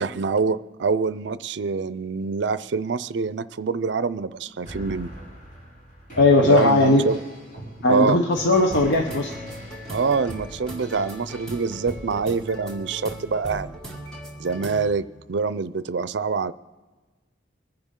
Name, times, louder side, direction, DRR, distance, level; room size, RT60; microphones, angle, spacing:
voice 1, 0.0-5.2 6.4-7.2 7.9-8.2 9.9-13.8 14.4-16.5, right 4 dB, 75° right, 16 dB, 0.5 m, -25 dB
sound 1, 4.7-12.0, equal, 45° left, 5.8 m, -43 dB
voice 2, 6.2-7.0 7.8-9.3, left 2 dB, 85° left, 2 dB, 1.0 m, -18 dB
sound 2, 8.4-14.9, right 1 dB, 5° left, 1.9 m, -38 dB
23.5 x 10.5 x 3.8 m, 1.2 s
head